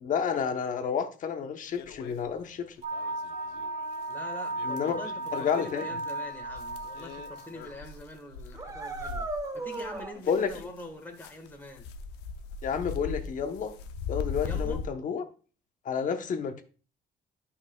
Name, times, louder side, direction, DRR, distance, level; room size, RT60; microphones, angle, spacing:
voice 1, 0.0-2.7 4.6-5.0 5.3-5.9 10.3-10.5 12.6-13.7 14.1-15.2 15.8-16.6, left 7 dB, 50° left, 1.0 m, -30 dB
sound 1, 1.7-2.6 2.9-10.8 11.2-14.9, left 5 dB, 90° left, 0.7 m, -40 dB
sound 2, 2.8-7.8, right 2 dB, 50° right, 1.9 m, -36 dB
voice 2, 4.1-11.9 14.4-14.8, left 1 dB, 10° left, 1.6 m, -44 dB
sound 3, 6.6-6.7 7.1-7.4 7.7-7.8 8.5-10.1, right 2 dB, 20° right, 1.1 m, -36 dB
10.5 x 5.8 x 2.3 m
cardioid pair, 110°, 17 cm